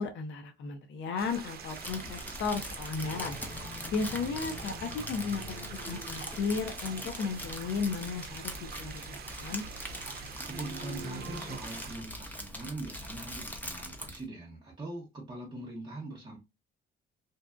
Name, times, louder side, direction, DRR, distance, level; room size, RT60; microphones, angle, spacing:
voice 1, 0.0-3.4 3.9-9.6, left 4 dB, 70° left, 0.6 m, -34 dB
sound 1, 1.2-12.0, right 7 dB, 50° right, 0.5 m, -45 dB
Crumpling crinkling, 1.6-14.2, left 1 dB, 10° left, 0.6 m, -42 dB
sound 2, 2.9-7.7 10.5-11.6, left 2 dB, 40° left, 1.2 m, -46 dB
voice 2, 10.5-16.4, right 2 dB, 25° right, 0.8 m, -42 dB
2.7 x 2.2 x 2.5 m
cardioid pair, 90°, 20 cm